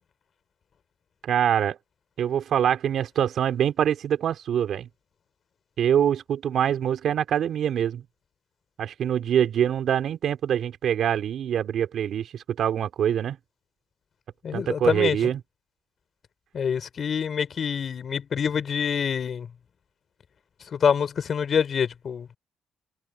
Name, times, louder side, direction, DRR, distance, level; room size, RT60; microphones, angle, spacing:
voice 1, 1.2-1.8 2.2-4.9 5.8-8.0 8.8-13.4 14.5-15.4, right 9 dB, 70° right, 3.8 m, -24 dB
voice 2, 14.4-15.2 16.5-19.5 20.7-22.4, left 7 dB, 50° left, 5.9 m, -26 dB
cardioid pair, 90°, 0 cm